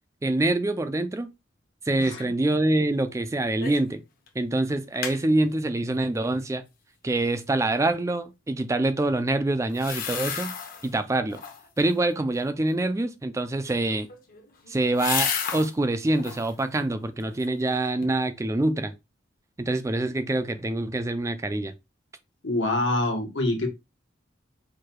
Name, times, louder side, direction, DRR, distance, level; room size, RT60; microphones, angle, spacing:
voice 1, 0.2-1.3 1.9-4.0 4.4-6.6 7.0-10.5 10.8-11.4 11.8-14.1 14.7-18.9 19.6-21.7, right 2 dB, 15° right, 0.3 m, -25 dB
voice 2, 2.0-2.3 22.4-23.7, left 2 dB, 75° left, 1.3 m, -25 dB
sound 1, 3.6-3.9 4.3-4.4 4.7-5.2 9.7-10.9 11.3-11.8 13.8-15.7 16.1-16.6 17.0-17.7 18.0-18.1, left 7 dB, 50° left, 0.8 m, -32 dB
4.7 x 2.3 x 4.5 m
head